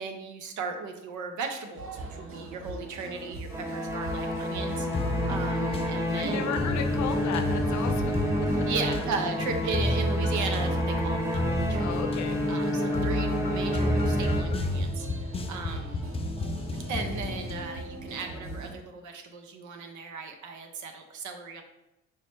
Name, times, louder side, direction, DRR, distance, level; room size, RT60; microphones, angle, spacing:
voice 1, 0.0-4.9 5.3-6.6 8.7-11.9 12.5-15.1 15.5-16.0 16.9-21.6, right 4 dB, 75° right, 5 dB, 0.7 m, -36 dB
sound 1, 1.7-18.7, right 1 dB, 45° right, 0.8 m, -40 dB
sound 2, 3.5-15.0, equal, 10° right, 1.0 m, -30 dB
sound 3, 4.9-17.7, left 1 dB, 20° left, 0.4 m, -31 dB
voice 2, 5.6-8.7 11.8-12.4, left 7 dB, 70° left, 7 dB, 0.6 m, -35 dB
4.8 x 2.1 x 4.4 m, 0.94 s
cardioid pair, 90°, 30 cm